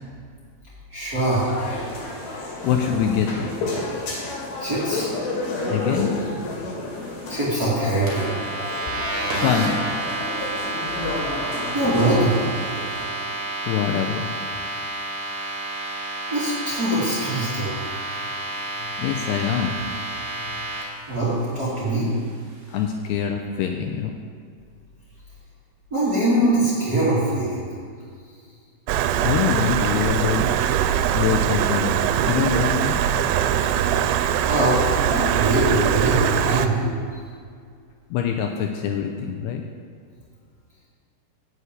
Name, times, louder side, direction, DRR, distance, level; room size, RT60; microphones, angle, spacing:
voice 1, 0.9-1.5 4.6-5.1 7.3-8.3 11.7-12.4 16.3-17.7 21.1-22.1 25.9-27.6 34.5-36.9, right 1 dB, 30° right, -9 dB, 2.1 m, -22 dB
sound 1, 1.2-13.0, left 2 dB, 65° left, 3.6 m, -30 dB
voice 2, 2.6-3.5 5.7-6.1 9.3-9.8 13.7-14.3 19.0-19.9 22.7-24.1 29.2-30.5 31.1-33.0 38.1-39.6, left 8 dB, 80° left, 4 dB, 2.5 m, -24 dB
sound 2, 8.1-20.8, right 2 dB, 50° right, 3.2 m, -30 dB
Stream, 28.9-36.7, right 10 dB, 90° right, 2.9 m, -22 dB
9.2 x 7.1 x 8.3 m, 2.1 s
omnidirectional pair, 5.2 m